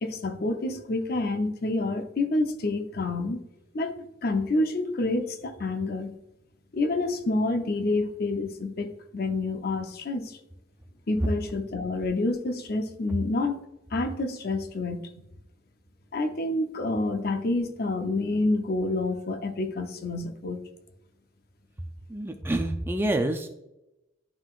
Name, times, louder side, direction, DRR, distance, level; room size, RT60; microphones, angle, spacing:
voice 1, 0.0-3.5 3.7-6.1 6.7-10.4 11.1-13.6 13.9-15.0 16.1-20.6, left 2 dB, 55° left, 6 dB, 0.7 m, -28 dB
voice 2, 22.1-23.5, right 1 dB, 10° right, 5 dB, 0.4 m, -27 dB
11.0 x 3.8 x 2.4 m, 0.90 s
head